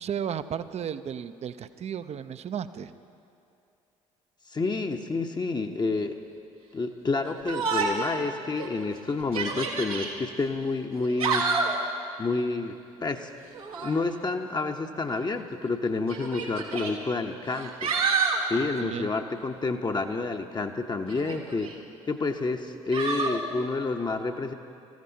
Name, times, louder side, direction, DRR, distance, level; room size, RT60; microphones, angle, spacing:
voice 1, 0.0-2.9 18.5-19.1, right 8 dB, 35° right, 12 dB, 0.6 m, -34 dB
voice 2, 4.5-6.1 6.7-11.5 12.2-13.3 13.8-17.9 18.5-21.8 22.1-24.5, left 3 dB, 25° left, 4 dB, 0.9 m, -29 dB
Yell, 7.5-8.1 8.6-8.7 9.2-10.1 11.0-11.8 13.5-14.0 15.1-15.2 16.1-16.9 17.5-18.4 21.1-21.7 22.9-23.4, right 4 dB, 85° right, 1.4 m, -28 dB
25.0 x 14.5 x 2.8 m, 2.7 s
figure-of-eight pair, 50°, 18 cm